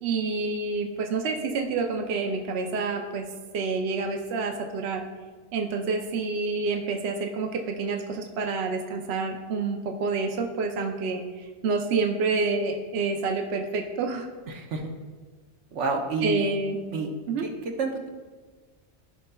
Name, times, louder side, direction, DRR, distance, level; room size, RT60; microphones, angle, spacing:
voice 1, 0.0-3.3 3.5-5.0 5.5-11.2 11.6-14.3 16.2-16.8 17.3-17.5, right 4 dB, 70° right, 4 dB, 0.9 m, -28 dB
voice 2, 14.5-14.8 15.7-16.4 16.9-17.1 17.4-17.5 17.8-18.1, right 3 dB, 85° right, 3 dB, 1.2 m, -28 dB
14.0 x 5.4 x 2.3 m, 1.4 s
omnidirectional pair, 1.2 m